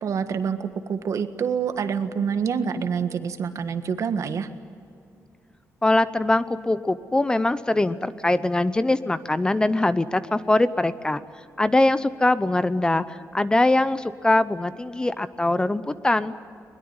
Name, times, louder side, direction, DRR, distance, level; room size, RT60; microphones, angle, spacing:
voice 1, 0.0-4.5, right 6 dB, 60° right, 9 dB, 1.6 m, -26 dB
voice 2, 5.8-11.2 11.6-16.3, left 2 dB, 15° left, 14 dB, 0.7 m, -22 dB
22.0 x 21.5 x 9.6 m, 2.4 s
cardioid pair, 130°, 6 cm